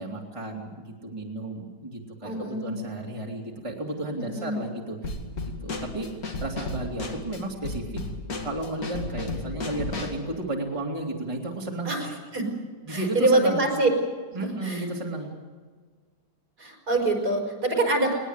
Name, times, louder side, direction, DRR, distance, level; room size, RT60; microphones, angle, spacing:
voice 1, 0.0-5.1 5.6-6.1 6.4-8.0 8.4-11.9 12.9-13.6 14.3-15.3, right 2 dB, 20° right, 0 dB, 2.7 m, -33 dB
voice 2, 2.2-2.7 4.2-4.6 11.9-12.5 12.9-13.9 14.3-14.9 16.6-18.1, right 2 dB, 70° right, 2 dB, 5.7 m, -25 dB
Drum kit / Snare drum, 5.0-10.2, left 2 dB, 60° left, 2.7 m, -34 dB
20.5 x 20.0 x 8.2 m, 1.5 s
omnidirectional pair, 1.8 m